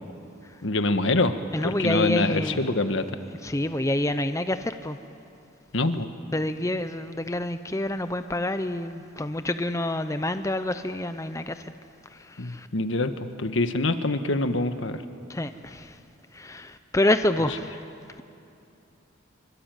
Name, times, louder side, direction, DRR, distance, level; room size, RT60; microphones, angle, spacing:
voice 1, 0.6-3.1 5.7-6.1 12.4-15.0, left 2 dB, 70° left, 9 dB, 1.4 m, -25 dB
voice 2, 1.5-2.6 3.4-5.0 6.3-11.7 12.1-12.7 15.3-16.0 16.3-17.7, left 1 dB, 15° left, 10 dB, 0.6 m, -27 dB
25.0 x 25.0 x 9.2 m, 2.7 s
head